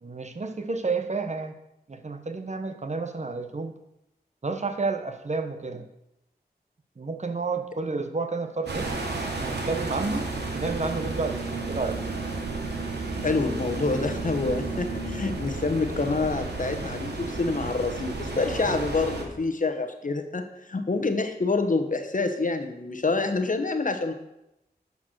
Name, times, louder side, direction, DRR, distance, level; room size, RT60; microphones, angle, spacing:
voice 1, 0.0-1.5 1.9-3.7 4.4-5.9 7.0-8.9 9.4-10.3 10.5-12.0 18.6-18.8, right 4 dB, 45° right, 6 dB, 1.0 m, -30 dB
sound 1, 8.7-19.2, right 3 dB, 80° right, 1.5 m, -32 dB
voice 2, 13.2-24.1, left 3 dB, 50° left, 7 dB, 1.2 m, -27 dB
10.5 x 4.7 x 6.4 m, 0.86 s
cardioid pair, 50°, 17 cm